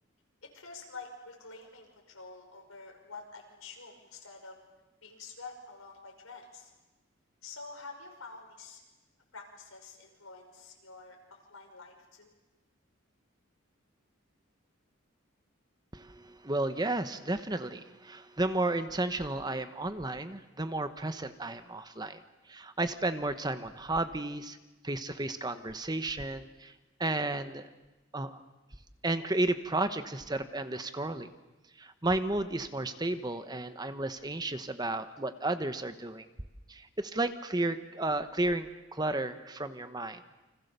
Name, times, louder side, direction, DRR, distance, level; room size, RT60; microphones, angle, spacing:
voice 1, 0.4-4.6 5.0-6.7 7.4-8.8 9.3-12.3, left 4 dB, 85° left, 2 dB, 5.8 m, -48 dB
voice 2, 15.9-22.2 22.5-24.6 24.8-26.7 27.0-27.7 28.1-28.4 29.0-31.3 31.8-36.2 36.7-40.2, right 2 dB, 20° right, 10 dB, 1.1 m, -33 dB
29.5 x 26.0 x 6.8 m, 1.1 s
head